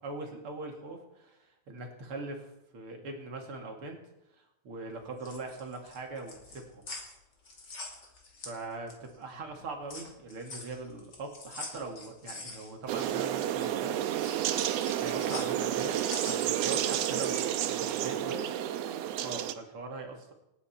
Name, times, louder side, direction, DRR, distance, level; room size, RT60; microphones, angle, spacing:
voice 1, 0.0-4.0 4.4-6.9 8.4-14.1 14.9-18.5 19.1-20.3, right 3 dB, 45° right, 2 dB, 3.0 m, -41 dB
sound 1, 5.0-9.2 9.5-17.6, left 3 dB, 35° left, 3.1 m, -45 dB
sound 2, 12.9-19.5, right 11 dB, 75° right, 1.6 m, -30 dB
28.0 x 9.7 x 4.4 m, 0.91 s
omnidirectional pair, 3.7 m